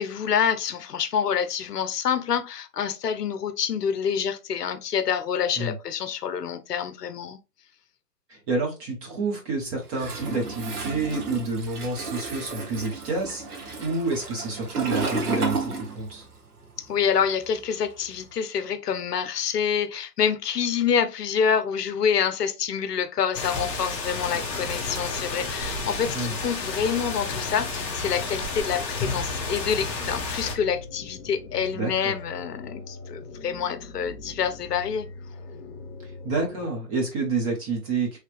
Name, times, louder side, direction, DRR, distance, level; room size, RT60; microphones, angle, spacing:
voice 1, 0.0-7.4 16.8-35.1, left 7 dB, 70° left, 0.7 m, -27 dB
voice 2, 8.3-16.3 26.1-26.3 31.7-32.1 36.0-38.2, right 3 dB, 20° right, 0.9 m, -29 dB
Toilet flush, 9.9-16.4 16.6-18.2, right 3 dB, 65° right, 1.3 m, -32 dB
sound 1, 23.3-30.5, left 3 dB, 20° left, 0.7 m, -31 dB
sound 2, 24.0-36.7, left 3 dB, 45° left, 1.0 m, -42 dB
3.2 x 2.9 x 3.0 m
hypercardioid pair, 140°, 49 cm